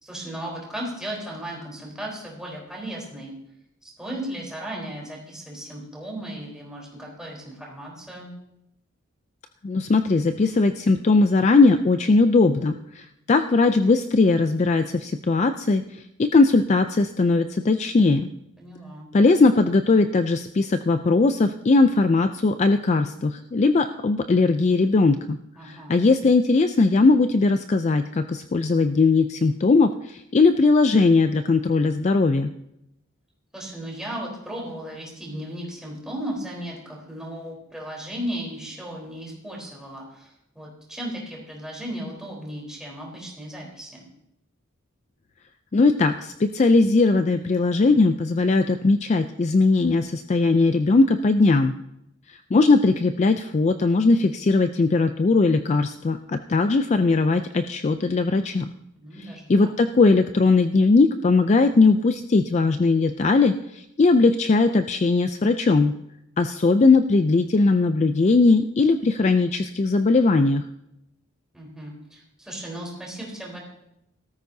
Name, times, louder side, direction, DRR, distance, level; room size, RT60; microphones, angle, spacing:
voice 1, 0.0-3.3 3.8-8.3 18.6-19.1 25.6-26.0 33.5-44.1 59.0-59.7 71.5-73.6, right 1 dB, 5° right, -3 dB, 3.9 m, -36 dB
voice 2, 9.6-18.3 19.1-32.5 45.7-51.7 52.3-58.7 59.2-65.9 66.4-70.6, left 3 dB, 35° left, 9 dB, 0.4 m, -19 dB
18.0 x 13.5 x 2.7 m, 0.81 s
head